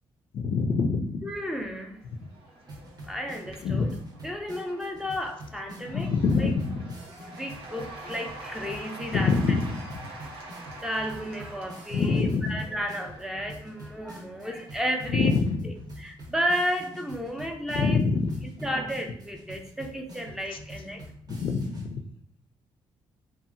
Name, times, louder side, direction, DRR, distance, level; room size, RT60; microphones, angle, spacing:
voice 1, 0.3-1.2 3.6-3.9 5.9-6.8 9.1-9.7 11.9-12.6 15.1-15.5 17.7-18.4 21.3-22.0, left 4 dB, 65° left, 6 dB, 0.3 m, -25 dB
voice 2, 1.2-2.0 3.0-4.0 4.2-6.1 6.4-6.5 7.2-9.3 10.1-10.3 10.8-15.3 16.0-18.0 18.6-21.0, equal, 5° right, 3 dB, 0.4 m, -32 dB
Cheering / Applause / Crowd, 1.8-15.2, right 2 dB, 85° right, 0.7 m, -46 dB
sound 1, 2.7-21.9, right 1 dB, 45° right, 0.7 m, -46 dB
2.8 x 2.4 x 2.5 m, 0.67 s
cardioid pair, 90°, 9 cm